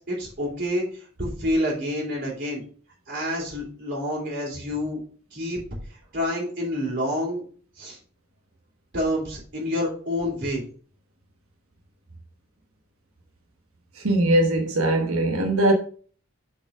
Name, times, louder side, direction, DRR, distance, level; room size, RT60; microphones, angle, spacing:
voice 1, 0.1-2.6 3.1-5.0 5.3-5.6 6.1-7.4 7.8-8.0 8.9-10.6, left 1 dB, 45° right, 3.3 m, -28 dB
voice 2, 14.0-15.7, right 1 dB, 70° right, 1.3 m, -21 dB
7.2 x 5.0 x 5.0 m
head